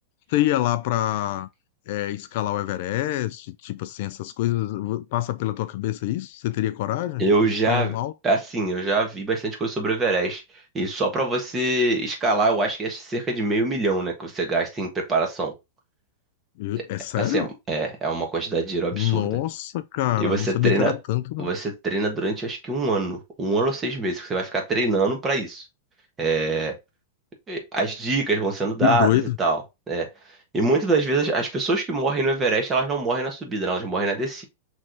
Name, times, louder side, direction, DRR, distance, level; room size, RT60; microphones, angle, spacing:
voice 1, 0.3-1.5 1.9-8.1 16.6-17.5 18.9-21.5 28.8-29.4, left 15 dB, 55° left, 0.4 m, -26 dB
voice 2, 7.2-7.9 8.2-10.4 10.7-15.5 17.2-19.4 20.2-20.9 21.4-25.6 26.2-26.7 27.5-29.6 29.9-30.1 30.5-34.4, right 3 dB, 15° right, 1.4 m, -24 dB
5.8 x 3.2 x 2.6 m
supercardioid pair, 150°, 0 cm